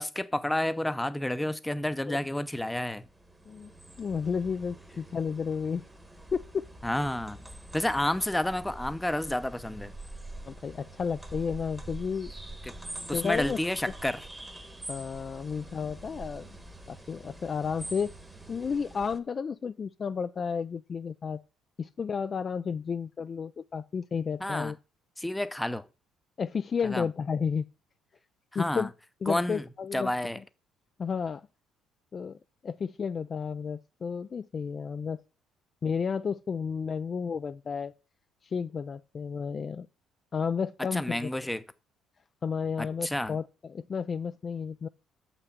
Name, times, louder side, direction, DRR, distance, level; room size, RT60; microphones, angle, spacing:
voice 1, 0.0-3.0 6.8-7.4 7.7-9.9 12.6-12.7 13.1-14.2 24.4-24.7 25.2-25.8 26.9-27.1 28.5-28.9 29.3-29.6 29.9-30.4 40.9-41.6 42.8-43.4, left 1 dB, 5° left, 0.7 m, -30 dB
sound 1, 2.8-19.2, right 1 dB, 10° right, 1.1 m, -45 dB
voice 2, 4.0-5.8 6.3-6.6 10.4-12.3 13.1-13.6 14.9-16.5 16.9-18.1 18.5-21.4 21.8-24.8 26.4-27.7 28.5-28.9 29.2-30.1 31.0-31.5 32.1-32.4 32.6-35.2 35.8-37.9 38.4-39.9 40.3-41.3 42.4-44.9, left 6 dB, 35° left, 0.4 m, -32 dB
6.8 x 5.8 x 6.7 m
cardioid pair, 105°, 0 cm